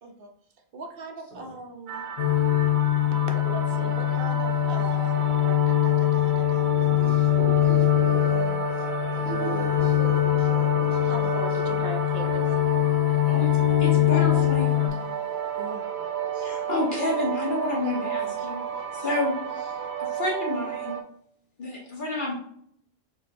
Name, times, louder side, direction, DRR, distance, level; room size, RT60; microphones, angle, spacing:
voice 1, 0.7-2.1 3.2-6.9 11.0-12.4 15.5-16.0, right 3 dB, 60° right, 3 dB, 0.8 m, -39 dB
sound 1, 1.9-21.0, right 7 dB, 85° right, 0.9 m, -33 dB
sound 2, 2.2-14.9, left 14 dB, 70° left, 0.9 m, -23 dB
voice 2, 6.6-8.9 9.1-11.8, right 2 dB, 85° left, -5 dB, 2.3 m, -38 dB
voice 3, 13.3-15.1 16.3-18.6 18.9-21.0 21.6-22.3, left 2 dB, 50° left, -3 dB, 1.5 m, -30 dB
5.9 x 2.8 x 2.6 m, 0.67 s
omnidirectional pair, 1.1 m